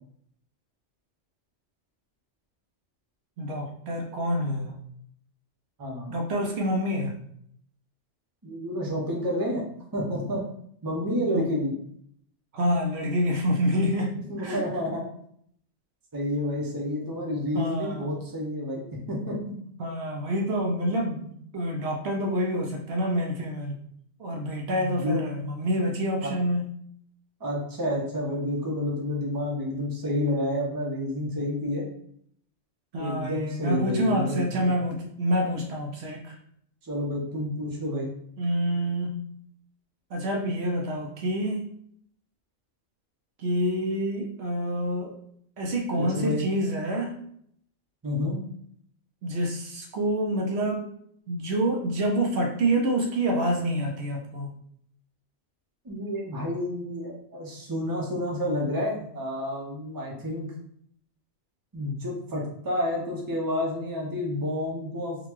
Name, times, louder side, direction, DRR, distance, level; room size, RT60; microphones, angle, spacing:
voice 1, 3.4-4.8 6.1-7.2 11.3-11.5 12.5-14.1 14.4-14.6 17.5-18.1 19.8-23.8 24.2-26.7 32.9-36.4 38.4-39.2 40.1-41.7 43.4-45.2 45.6-47.2 49.2-50.9 51.3-54.5, equal, 70° right, 0 dB, 0.8 m, -27 dB
voice 2, 5.8-6.1 8.4-9.6 9.9-10.4 10.8-11.7 14.1-15.0 16.1-18.8 19.1-19.6 24.7-25.2 26.2-26.3 27.4-31.8 32.9-34.7 36.8-38.1 46.0-46.5 48.0-48.4 55.8-60.5 61.7-65.2, left 1 dB, 25° right, -3 dB, 0.6 m, -29 dB
3.7 x 2.2 x 3.0 m, 0.67 s
omnidirectional pair, 1.2 m